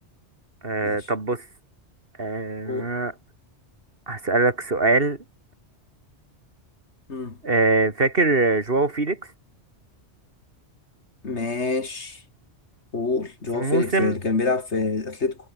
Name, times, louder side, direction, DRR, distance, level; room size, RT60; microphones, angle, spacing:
voice 1, 0.6-1.4 2.2-3.1 4.1-5.2 7.4-9.2 13.5-14.2, right 3 dB, 55° right, 3.2 m, -22 dB
voice 2, 11.2-12.2 12.9-15.4, left 3 dB, 75° left, 2.7 m, -26 dB
omnidirectional pair, 1.2 m